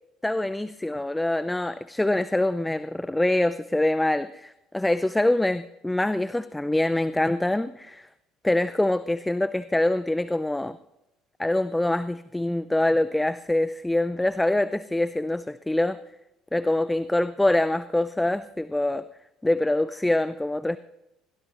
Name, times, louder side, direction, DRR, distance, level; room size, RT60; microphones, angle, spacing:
voice 1, 0.2-8.1 8.4-10.8 11.4-16.0 16.5-19.0 19.4-20.8, left 1 dB, 10° left, 15 dB, 0.6 m, -24 dB
22.0 x 18.0 x 3.1 m, 0.91 s
figure-of-eight pair, 55°, 0 cm